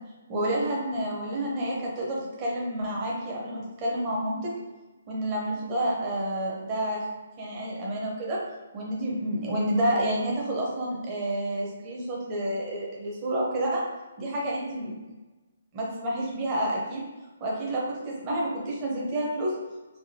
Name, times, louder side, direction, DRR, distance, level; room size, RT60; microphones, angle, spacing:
voice 1, 0.3-4.5 5.1-7.0 7.4-8.4 8.7-13.8 14.2-14.9 15.7-17.0 17.4-19.5, right 1 dB, 25° right, -4 dB, 0.7 m, -29 dB
3.5 x 2.2 x 2.7 m, 1.2 s
hypercardioid pair, 155°, 0 cm